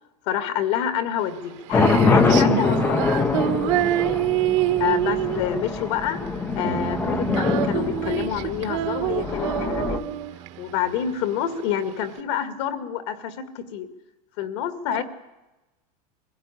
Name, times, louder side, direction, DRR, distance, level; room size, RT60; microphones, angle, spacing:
voice 1, 0.3-3.0 4.8-6.2 6.6-10.1 10.6-13.9 14.4-15.0, left 9 dB, 45° left, 10 dB, 2.1 m, -27 dB
Female singing, 1.2-12.2, right 14 dB, 50° right, 1.5 m, -26 dB
sound 1, 1.7-10.0, left 4 dB, 10° left, 0.8 m, -24 dB
voice 2, 3.9-4.3 9.2-9.4 14.9-15.0, right 14 dB, 75° right, 8 dB, 2.2 m, -38 dB
sound 2, 6.6-11.3, right 12 dB, 20° right, 0.9 m, -38 dB
23.5 x 16.5 x 9.9 m, 1.1 s
supercardioid pair, 180°, 20 cm